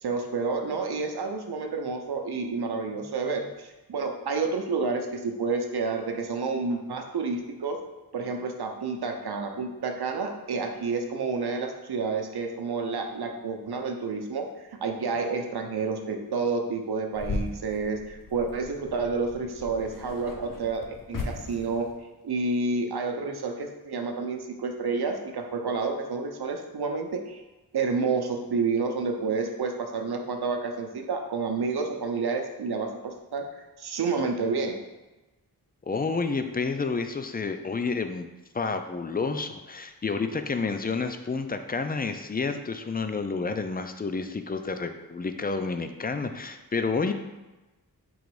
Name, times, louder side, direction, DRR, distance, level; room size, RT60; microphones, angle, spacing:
voice 1, 0.0-7.8 8.1-21.9 22.2-27.4 27.7-34.8, right 4 dB, 75° right, 4 dB, 0.6 m, -29 dB
sound 1, 17.1-22.0, left 3 dB, 55° left, 0.7 m, -38 dB
voice 2, 35.9-38.3 38.5-47.1, left 4 dB, 25° left, 7 dB, 0.3 m, -30 dB
3.8 x 3.0 x 4.7 m, 1.1 s
wide cardioid pair, 70°, 39 cm